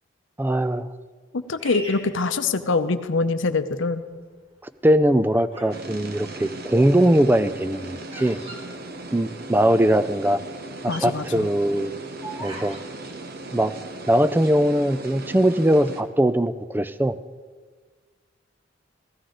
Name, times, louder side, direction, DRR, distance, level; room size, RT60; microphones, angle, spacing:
voice 1, 0.4-0.9 4.8-8.4 9.1-10.4 10.8-11.9 12.4-12.8 13.5-13.7 14.1-17.2, right 1 dB, 10° right, 12 dB, 0.3 m, -20 dB
voice 2, 1.3-4.0 10.9-11.5, left 3 dB, 70° left, 10 dB, 0.7 m, -24 dB
Bird vocalization bird call bird song, 1.6-3.1 3.7-4.2 4.9-5.9 6.1-9.6 9.9-10.0 10.2-10.5 10.9-12.9, right 1 dB, 30° right, 1.8 m, -41 dB
sound 1, 5.7-16.0, right 2 dB, 50° right, 0.9 m, -38 dB
16.0 x 13.0 x 3.9 m, 1.6 s
head